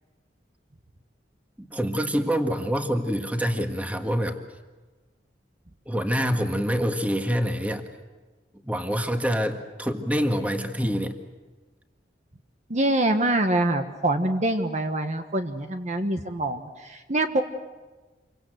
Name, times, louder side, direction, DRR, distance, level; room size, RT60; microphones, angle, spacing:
voice 1, 1.6-4.4 5.9-7.8 8.6-11.1, equal, 10° right, 5 dB, 1.7 m, -26 dB
voice 2, 12.7-17.4, right 1 dB, 40° right, 6 dB, 1.3 m, -25 dB
28.0 x 24.0 x 7.9 m, 1.3 s
head